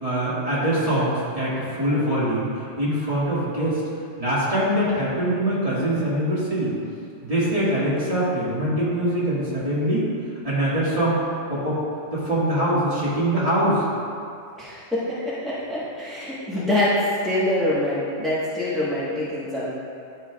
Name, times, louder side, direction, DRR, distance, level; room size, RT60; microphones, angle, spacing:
voice 1, 0.0-2.5 2.8-3.8 4.2-6.7 7.2-10.1 10.4-11.2 11.5-11.8 12.1-13.8, right 1 dB, 30° right, -10 dB, 1.9 m, -23 dB
voice 2, 14.6-19.7, left 1 dB, ahead, -10 dB, 1.2 m, -25 dB
11.0 x 5.6 x 2.4 m, 2.4 s
omnidirectional pair, 1.2 m